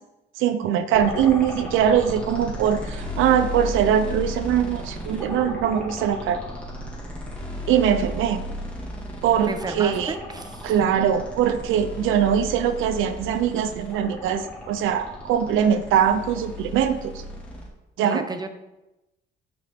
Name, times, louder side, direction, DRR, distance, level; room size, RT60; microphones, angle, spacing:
voice 1, 0.4-6.4 7.7-8.4 9.2-10.1 10.6-17.1 18.0-18.3, right 9 dB, 90° right, 10 dB, 0.6 m, -22 dB
sound 1, 0.9-17.7, left 1 dB, 5° left, 2.5 m, -35 dB
voice 2, 9.4-10.8 18.0-18.5, right 3 dB, 20° right, 8 dB, 0.9 m, -32 dB
9.6 x 6.1 x 3.6 m, 0.98 s
cardioid pair, 90°, 20 cm